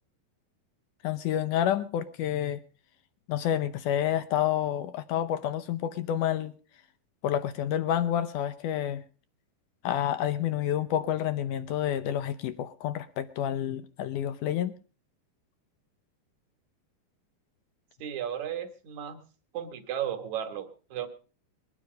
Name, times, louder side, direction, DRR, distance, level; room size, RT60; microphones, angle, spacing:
voice 1, 1.0-2.6 3.3-6.5 7.2-9.0 9.8-14.7, left 10 dB, 75° left, 13 dB, 2.0 m, -29 dB
voice 2, 18.0-19.2 19.5-21.1, right 9 dB, 55° right, 7 dB, 2.6 m, -34 dB
22.0 x 9.9 x 5.1 m, 0.38 s
omnidirectional pair, 4.4 m